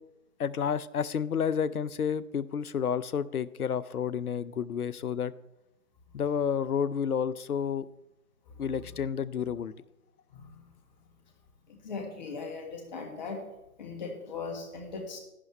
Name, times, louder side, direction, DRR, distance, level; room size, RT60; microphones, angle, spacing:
voice 1, 0.4-5.3 6.1-7.9 8.6-9.7, left 7 dB, 85° left, 19 dB, 0.6 m, -30 dB
voice 2, 10.3-10.6 11.7-13.4 13.8-15.2, left 4 dB, 30° left, 3 dB, 1.7 m, -39 dB
11.0 x 10.5 x 3.2 m, 0.93 s
figure-of-eight pair, 145°, 43 cm